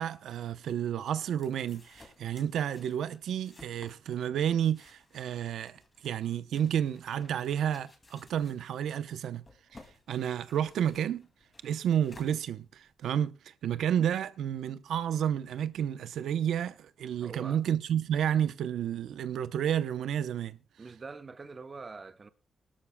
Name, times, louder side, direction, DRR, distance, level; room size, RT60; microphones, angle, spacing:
voice 1, 0.0-9.4 9.7-9.8 10.1-11.3 11.6-20.6, right 9 dB, 90° right, 0.7 m, -31 dB
sound 1, 0.6-13.1, left 3 dB, 25° left, 2.5 m, -58 dB
voice 2, 17.2-17.6 20.8-22.3, right 4 dB, 30° right, 0.9 m, -44 dB
22.5 x 13.0 x 2.2 m
cardioid pair, 130°, 0 cm